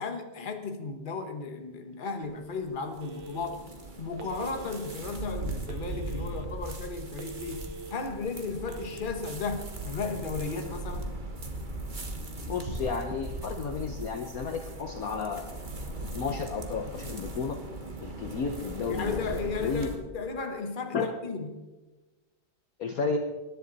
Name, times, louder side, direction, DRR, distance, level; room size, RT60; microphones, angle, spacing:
voice 1, 0.0-3.7 4.0-11.1 18.9-21.6, left 4 dB, 30° left, 1.3 m, -35 dB
sound 1, 2.2-20.0, right 2 dB, 30° right, 1.3 m, -39 dB
Telephone, 3.0-3.7 4.2-5.0 5.7-6.4 6.9-7.9 8.6-9.0, right 3 dB, 75° right, 1.7 m, -44 dB
voice 2, 12.5-15.5 16.1-17.6 18.0-19.9 20.9-21.1 22.8-23.2, left 5 dB, 55° left, 1.2 m, -32 dB
20.5 x 11.0 x 4.1 m
omnidirectional pair, 2.1 m